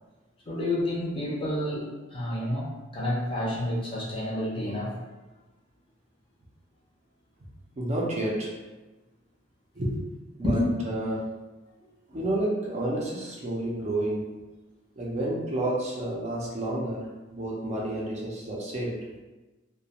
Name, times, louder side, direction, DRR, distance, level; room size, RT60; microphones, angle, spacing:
voice 1, 0.5-5.0 10.4-10.6, left 1 dB, 25° left, -5 dB, 0.6 m, -29 dB
voice 2, 7.8-8.6 9.8-10.0 10.4-11.3 12.1-14.2 15.0-19.0, right 1 dB, 35° right, -4 dB, 0.5 m, -30 dB
2.4 x 2.2 x 2.8 m, 1.1 s
head